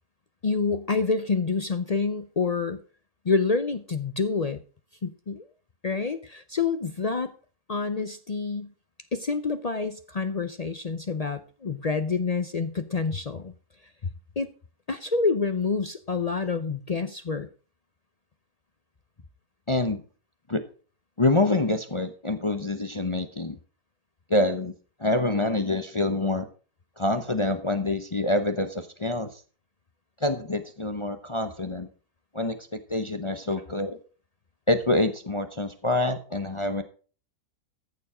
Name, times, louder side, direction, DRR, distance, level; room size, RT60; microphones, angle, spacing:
voice 1, 0.4-2.8 3.2-4.6 5.0-5.4 5.8-7.3 7.7-8.7 9.1-13.5 14.0-14.5 14.9-17.5, left 4 dB, 75° left, 10 dB, 0.3 m, -27 dB
voice 2, 19.7-20.0 20.5-20.6 21.2-23.6 24.3-24.7 25.0-26.5 27.0-29.4 30.2-31.9 32.3-34.0 34.7-36.8, left 2 dB, 25° left, 9 dB, 0.7 m, -26 dB
14.5 x 7.1 x 4.9 m, 0.39 s
omnidirectional pair, 1.7 m